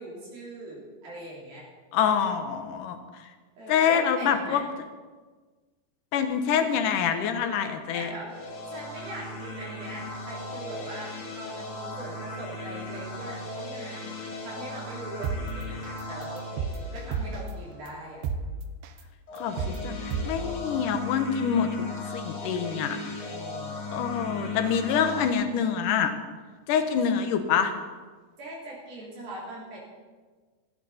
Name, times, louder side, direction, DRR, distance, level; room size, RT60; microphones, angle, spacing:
voice 1, 0.0-1.7 3.6-4.7 7.9-18.2 23.3-24.6 28.4-29.8, right 1 dB, 60° right, -5 dB, 5.2 m, -41 dB
voice 2, 1.9-3.0 3.7-4.6 6.1-8.1 19.3-21.7 22.1-23.0 23.9-26.1 26.7-27.7, left 7 dB, 70° left, 7 dB, 2.1 m, -26 dB
sound 1, 8.2-17.8 19.3-25.3, left 2 dB, 40° left, 2.4 m, -37 dB
sound 2, 15.2-15.4 15.8-16.0 16.4-17.5 17.9-18.0 18.2-18.4 18.8-19.0 19.4-19.8 20.1-20.3, right 6 dB, 85° right, 3.1 m, -29 dB
17.0 x 15.0 x 4.3 m, 1.4 s
omnidirectional pair, 4.9 m